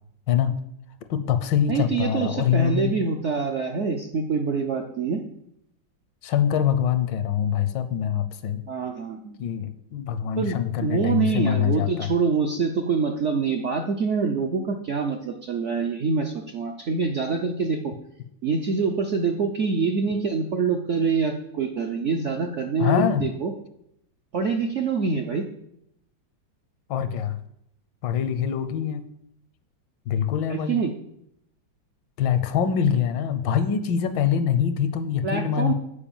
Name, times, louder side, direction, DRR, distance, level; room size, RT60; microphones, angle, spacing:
voice 1, 0.3-0.6 1.1-2.9 6.2-8.6 9.4-12.1 22.8-23.2 26.9-27.4 28.0-29.0 30.1-30.8 32.2-35.7, left 8 dB, 80° left, 10 dB, 1.4 m, -24 dB
voice 2, 1.7-5.2 8.7-9.4 10.4-17.9 18.4-23.5 24.3-25.4 30.5-30.9 35.2-35.7, right 5 dB, 65° right, 3 dB, 0.7 m, -25 dB
8.8 x 4.9 x 7.0 m, 0.76 s
omnidirectional pair, 2.0 m